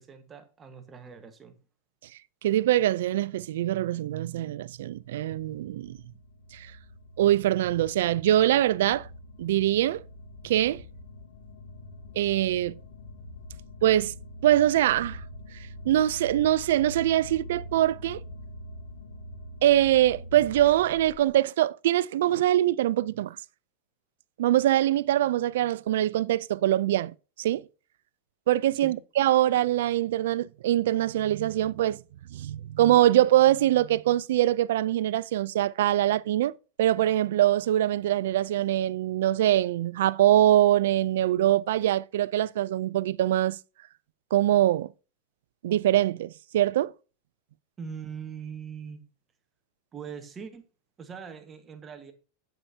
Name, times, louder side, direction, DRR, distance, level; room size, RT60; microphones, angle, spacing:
voice 1, 0.0-1.5 28.8-29.0 47.8-49.0 49.9-50.6 51.0-52.1, right 6 dB, 20° right, 1.4 m, -41 dB
voice 2, 2.4-6.0 6.5-6.7 7.2-9.1 9.4-10.0 10.4-10.8 12.2-12.7 13.8-14.1 14.4-15.2 15.9-18.2 19.6-23.4 24.4-27.1 27.4-27.6 28.5-32.0 32.3-36.5 36.8-43.6 44.3-44.9 45.6-46.9, right 13 dB, 75° right, 0.4 m, -23 dB
sound 1, 4.0-21.3, left 1 dB, 90° left, 2.4 m, -45 dB
8.8 x 8.5 x 2.8 m
supercardioid pair, 135°, 0 cm